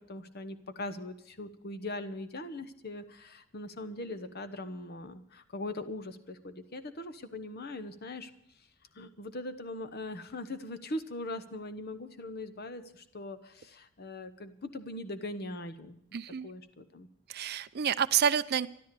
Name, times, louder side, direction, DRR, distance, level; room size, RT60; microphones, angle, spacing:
voice 1, 0.0-8.3 8.9-16.0 16.4-17.1, left 2 dB, 45° left, 11 dB, 1.0 m, -41 dB
voice 2, 16.1-16.5 17.3-18.7, right 8 dB, 45° right, 12 dB, 0.4 m, -28 dB
13.5 x 12.0 x 6.8 m, 0.73 s
head